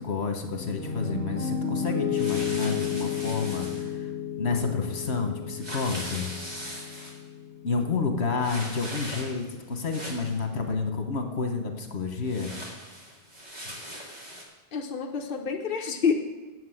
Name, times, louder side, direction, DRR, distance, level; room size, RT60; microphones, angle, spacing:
voice 1, 0.0-4.1 4.4-6.3 7.6-12.5 13.7-13.8, left 4 dB, 75° left, 4 dB, 1.5 m, -30 dB
Piano, 0.5-8.6, left 7 dB, 75° right, 2.3 m, -32 dB
sound 1, 2.1-3.9 5.6-7.2 8.4-9.5 9.8-10.4 12.2-14.4, equal, 40° right, 2.4 m, -40 dB
voice 2, 14.7-16.2, left 6 dB, 55° left, 1 dB, 1.0 m, -27 dB
8.0 x 7.8 x 7.8 m, 1.2 s
omnidirectional pair, 1.1 m